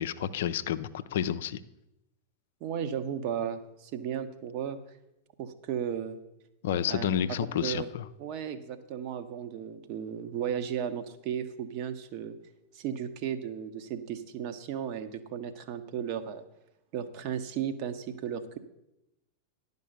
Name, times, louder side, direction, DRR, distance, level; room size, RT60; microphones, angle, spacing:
voice 1, 0.0-1.6 6.6-8.0, left 9 dB, 55° left, 13 dB, 0.4 m, -30 dB
voice 2, 2.6-4.8 5.4-6.2 6.9-7.1 7.6-7.9 8.2-12.4 12.7-16.4 16.9-18.6, right 8 dB, 45° right, 10 dB, 0.8 m, -35 dB
11.0 x 5.4 x 6.5 m, 0.89 s
figure-of-eight pair, 90°, 0 cm